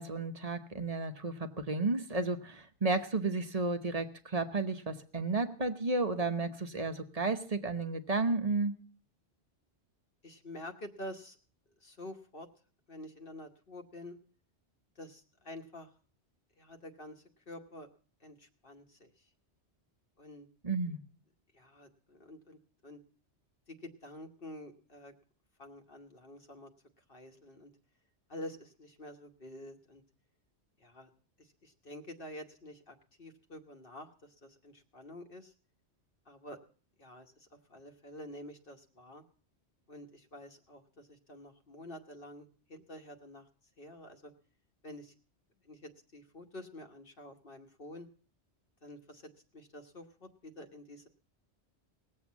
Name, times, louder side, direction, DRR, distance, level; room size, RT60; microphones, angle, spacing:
voice 1, 0.0-8.8 20.6-21.0, right 3 dB, 35° right, 8 dB, 1.0 m, -32 dB
voice 2, 10.2-11.4 11.8-12.5 12.9-14.2 15.0-15.9 16.6-17.9 18.2-19.3 20.2-20.5 21.5-23.0 23.7-25.1 25.6-26.7 27.1-27.7 28.3-30.0 30.8-31.1 31.4-35.5 36.3-36.6 37.0-39.2 39.9-43.5 43.8-44.3 44.8-45.1 45.6-48.1 48.8-49.2 49.5-51.1, left 1 dB, 50° left, 4 dB, 1.3 m, -48 dB
19.0 x 7.7 x 7.2 m, 0.43 s
omnidirectional pair, 1.2 m